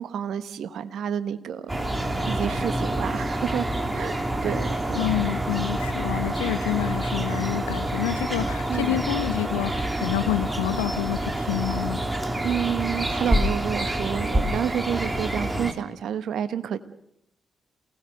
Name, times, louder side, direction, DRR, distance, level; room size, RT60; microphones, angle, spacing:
voice 1, 0.0-1.7 2.3-3.6 3.9-4.1 4.4-5.0 8.7-9.0 12.4-16.8, right 9 dB, 65° right, 13 dB, 1.3 m, -29 dB
sound 1, 1.7-15.7, right 1 dB, 15° right, 3.2 m, -27 dB
voice 2, 4.9-12.0, left 16 dB, 85° left, 13 dB, 1.0 m, -28 dB
28.0 x 19.0 x 6.6 m, 0.78 s
hypercardioid pair, 40°, 0 cm